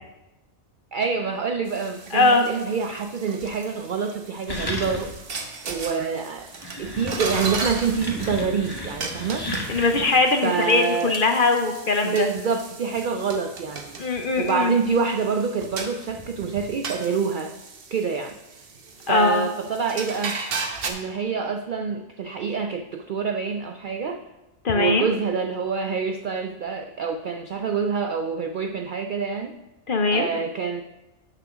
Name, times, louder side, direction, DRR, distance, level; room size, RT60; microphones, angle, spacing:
voice 1, 0.9-5.1 5.6-6.5 6.8-9.5 10.4-11.2 12.0-14.0 14.4-17.6 17.9-18.4 19.1-20.4 20.9-24.2 24.7-29.6 30.1-30.8, right 5 dB, 90° right, 6 dB, 0.4 m, -26 dB
sound 1, 1.7-20.9, right 4 dB, 50° right, 1.0 m, -36 dB
voice 2, 2.1-2.5 9.7-12.3 14.0-14.7 19.1-19.5 24.6-25.1 29.9-30.3, left 3 dB, 50° left, 5 dB, 0.7 m, -21 dB
sound 2, 4.5-5.3 5.7-5.8 6.4-10.2, left 1 dB, 20° left, 0.9 m, -33 dB
6.6 x 6.0 x 6.1 m, 1.0 s
omnidirectional pair, 1.4 m